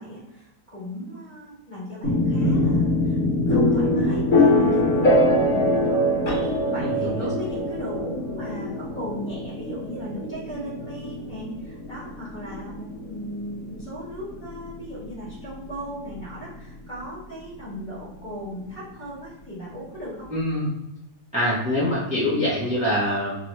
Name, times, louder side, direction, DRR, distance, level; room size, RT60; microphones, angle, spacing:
voice 1, 0.0-6.0 6.5-20.3, equal, 30° left, -7 dB, 1.5 m, -37 dB
sound 1, 2.0-15.8, left 1 dB, 55° left, 1.2 m, -23 dB
voice 2, 6.8-7.3 20.3-20.7 21.3-23.3, left 1 dB, 5° right, -9 dB, 0.8 m, -24 dB
3.0 x 2.9 x 3.0 m, 0.92 s
omnidirectional pair, 1.7 m